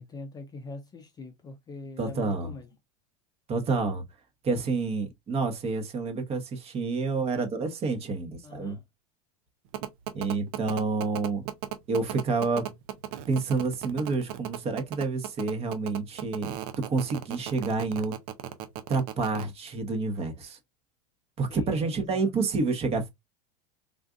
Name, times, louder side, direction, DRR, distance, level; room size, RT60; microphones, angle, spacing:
voice 1, 0.0-2.7 8.4-8.8 21.5-22.2, left 3 dB, 20° left, 0.5 m, -43 dB
voice 2, 2.0-2.5 3.5-4.0 4.4-8.8 10.1-11.4 11.9-12.7 13.3-18.2 18.9-20.6 21.4-23.1, right 4 dB, 30° right, 1.0 m, -29 dB
sound 1, 9.7-19.4, right 12 dB, 60° right, 0.7 m, -35 dB
3.7 x 2.5 x 2.4 m
supercardioid pair, 120°, 20 cm